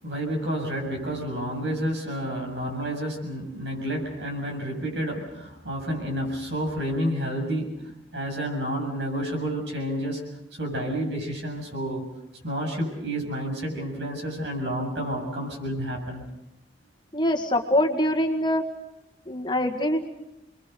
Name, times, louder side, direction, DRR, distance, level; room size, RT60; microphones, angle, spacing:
voice 1, 0.0-7.8 8.1-10.2 10.6-12.0 12.4-16.2, equal, 75° right, 1 dB, 7.5 m, -30 dB
voice 2, 17.1-18.6 19.3-20.1, left 1 dB, 25° left, 2 dB, 1.9 m, -24 dB
29.5 x 22.5 x 6.8 m, 0.87 s
head